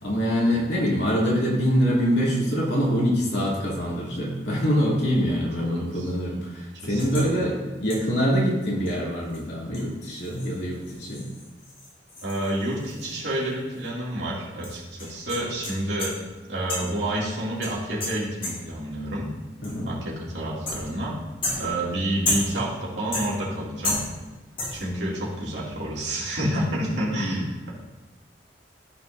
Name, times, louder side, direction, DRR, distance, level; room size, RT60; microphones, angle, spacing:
voice 1, 0.0-11.2 19.6-19.9 27.1-27.5, equal, 70° left, -5 dB, 2.7 m, -24 dB
voice 2, 0.5-0.9 5.3-6.1 6.9-7.5 12.2-16.1 16.5-19.3 19.8-21.2 21.5-24.0 24.7-27.7, right 1 dB, 70° right, -6 dB, 2.6 m, -29 dB
sound 1, 7.0-7.3 7.9-8.2 8.9-9.0 9.3-9.4 9.7-13.5 13.8-13.9 14.6-16.3 16.7-17.1 17.6-18.8 19.6-20.0 20.7-21.1 21.4-22.7 23.1-23.6 23.8-24.3 24.6-25.0, left 2 dB, 30° left, 2.4 m, -33 dB
15.0 x 5.6 x 2.7 m, 1.2 s
head